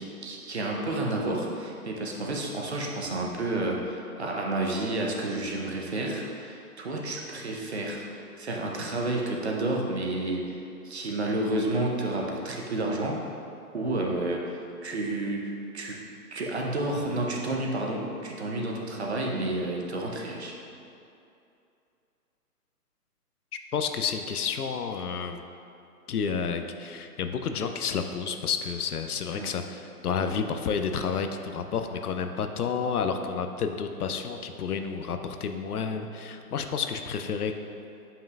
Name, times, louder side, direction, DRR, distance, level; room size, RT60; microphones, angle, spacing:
voice 1, 0.0-13.3 13.7-16.0 16.3-20.5 29.3-29.5, right 2 dB, 45° right, -1 dB, 0.7 m, -30 dB
voice 2, 23.7-25.4 26.1-37.5, left 6 dB, 70° left, 7 dB, 0.6 m, -30 dB
7.5 x 5.6 x 2.3 m, 2.7 s
hypercardioid pair, 170°, 47 cm